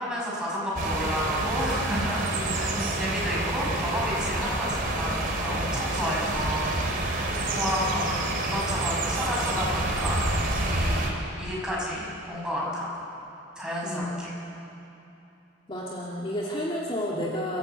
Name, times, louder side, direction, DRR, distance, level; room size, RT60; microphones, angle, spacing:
voice 1, 0.0-2.3 2.6-7.2 7.6-8.1 8.4-12.9 13.6-14.3, equal, 5° right, -6 dB, 6.5 m, -31 dB
sound 1, 0.8-11.1, right 2 dB, 45° right, 3.2 m, -28 dB
voice 2, 2.3-3.2 7.3-8.2 13.8-14.3 15.7-17.6, equal, 30° left, -4 dB, 2.1 m, -33 dB
28.5 x 16.0 x 8.1 m, 2.9 s
head